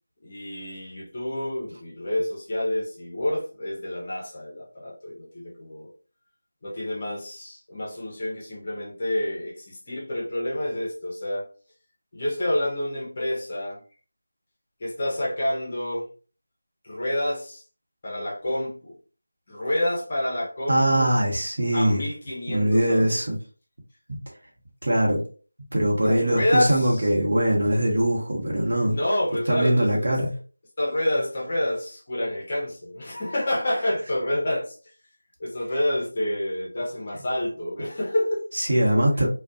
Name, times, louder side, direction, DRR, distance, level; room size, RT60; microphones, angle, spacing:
voice 1, 0.2-5.9 6.6-11.5 12.1-13.8 14.8-16.1 16.8-17.6 18.0-19.0 19.5-21.1 21.7-23.2 26.0-27.1 28.9-30.2 30.8-34.8 35.4-38.4, left 1 dB, 25° left, 0.7 m, -28 dB
voice 2, 20.7-22.0 22.5-23.4 24.1-24.2 24.8-25.2 25.7-29.0 29.5-30.3 38.5-39.3, right 1 dB, 50° right, 0.9 m, -22 dB
2.4 x 2.2 x 2.5 m
figure-of-eight pair, 175°, 0 cm